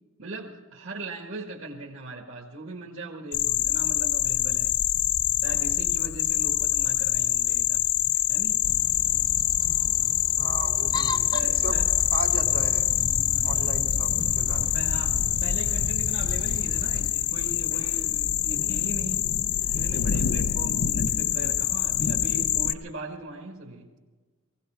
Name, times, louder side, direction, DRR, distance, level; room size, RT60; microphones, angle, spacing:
voice 1, 0.2-4.8 5.4-8.6 11.3-11.9 13.4-13.7 14.5-19.3 19.7-23.9, right 2 dB, 65° right, -1 dB, 1.6 m, -39 dB
sound 1, 3.3-22.7, left 12 dB, 80° left, 0.5 m, -25 dB
sound 2, 8.6-17.1, left 2 dB, 20° left, 0.4 m, -34 dB
voice 2, 10.4-11.8 12.1-12.9 13.4-14.6, right 4 dB, 85° right, -1 dB, 2.6 m, -36 dB
19.5 x 16.0 x 4.5 m, 1.3 s
head